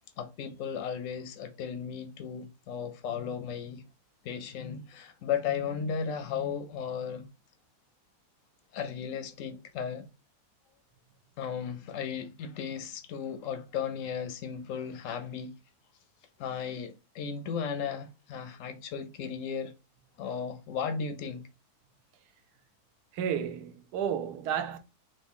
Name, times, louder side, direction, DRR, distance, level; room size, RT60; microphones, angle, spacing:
voice 1, 0.2-3.8 4.2-7.3 8.7-10.1 11.4-15.5 16.4-19.7 20.2-21.4, left 7 dB, 70° left, 0.8 m, -35 dB
voice 2, 23.1-24.8, right 8 dB, 85° right, 1.1 m, -32 dB
3.1 x 2.6 x 3.5 m
omnidirectional pair, 1.7 m